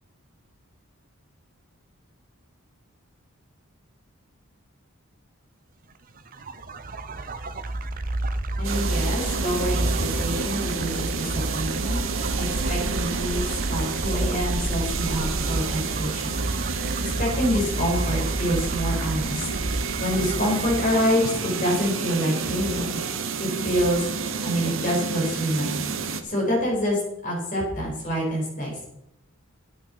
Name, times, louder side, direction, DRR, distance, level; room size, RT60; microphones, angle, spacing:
sound 1, 6.2-21.9, right 2 dB, 40° right, 0.7 m, -30 dB
voice 1, 8.6-12.0 12.4-16.4 17.0-19.5 20.0-23.0 23.4-24.0 24.4-28.8, equal, 40° left, -4 dB, 5.5 m, -26 dB
sound 2, 8.6-26.2, right 5 dB, 70° right, 1.1 m, -30 dB
10.5 x 8.8 x 5.7 m, 0.81 s
head